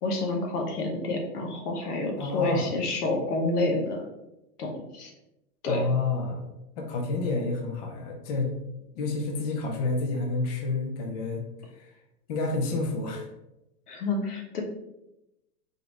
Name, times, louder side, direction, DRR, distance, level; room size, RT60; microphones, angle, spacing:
voice 1, 0.0-4.0 4.6-5.1 5.6-5.9 13.9-14.6, left 2 dB, 80° left, 2 dB, 1.1 m, -29 dB
voice 2, 2.2-2.7 5.7-6.5 6.8-8.5 9.0-11.4 11.7-11.9 12.3-13.3, left 3 dB, 25° left, 2 dB, 0.4 m, -29 dB
3.9 x 3.3 x 2.9 m, 0.91 s
hypercardioid pair, 135°, 46 cm